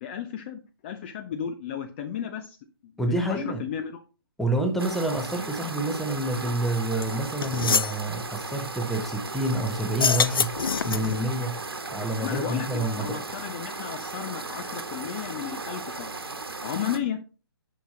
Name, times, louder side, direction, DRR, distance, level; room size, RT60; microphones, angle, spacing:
voice 1, 0.0-2.6 2.8-4.0 12.2-16.1 16.6-17.2, left 9 dB, 30° left, 0.7 m, -34 dB
voice 2, 3.0-3.6 4.4-10.6 10.8-13.3, right 1 dB, ahead, 1.0 m, -28 dB
sound 1, 4.8-17.0, right 3 dB, 75° right, 1.2 m, -36 dB
sound 2, 7.0-7.1 7.4-8.0 9.9-11.2, left 5 dB, 65° left, 0.5 m, -25 dB
8.3 x 5.9 x 3.8 m
figure-of-eight pair, 135°, 13 cm